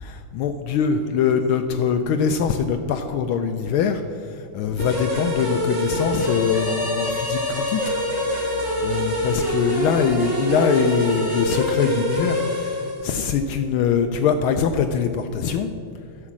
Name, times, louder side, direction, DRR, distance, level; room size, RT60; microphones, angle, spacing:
voice 1, 0.0-15.7, left 7 dB, 80° left, 7 dB, 1.4 m, -23 dB
sound 1, 4.8-13.1, equal, 60° right, 3.8 m, -25 dB
Bowed string instrument, 6.0-11.6, left 1 dB, 20° left, 0.3 m, -37 dB
sound 2, 6.4-15.5, equal, 40° right, 0.9 m, -41 dB
11.0 x 6.1 x 7.2 m, 2.4 s
omnidirectional pair, 2.4 m